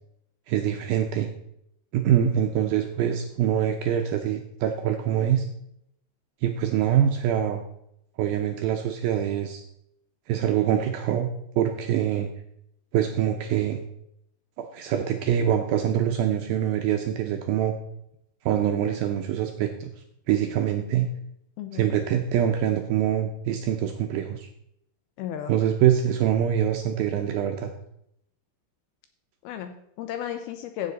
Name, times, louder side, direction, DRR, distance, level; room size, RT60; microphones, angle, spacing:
voice 1, 0.5-1.3 1.9-5.5 6.4-7.6 8.2-9.6 10.3-11.3 11.6-12.3 12.9-13.8 14.6-17.8 18.5-19.9 20.3-21.1 21.7-24.5 25.5-27.7, right 10 dB, 80° right, 5 dB, 2.2 m, -24 dB
voice 2, 21.6-21.9 25.2-25.5 29.4-30.9, left 10 dB, 80° left, 8 dB, 2.3 m, -34 dB
15.5 x 7.5 x 4.1 m, 0.77 s
omnidirectional pair, 5.0 m